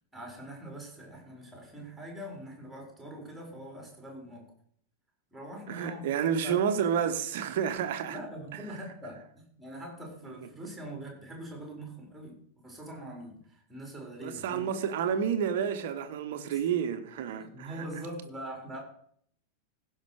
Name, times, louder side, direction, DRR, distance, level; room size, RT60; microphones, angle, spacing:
voice 1, 0.1-4.5 5.3-6.1 6.4-6.6 8.1-14.7 16.5-16.6 17.4-18.8, right 1 dB, ahead, 4.7 m, -43 dB
voice 2, 5.7-8.2 14.2-17.7, right 8 dB, 55° right, 1.1 m, -30 dB
16.0 x 5.7 x 4.9 m
figure-of-eight pair, 90°, 0 cm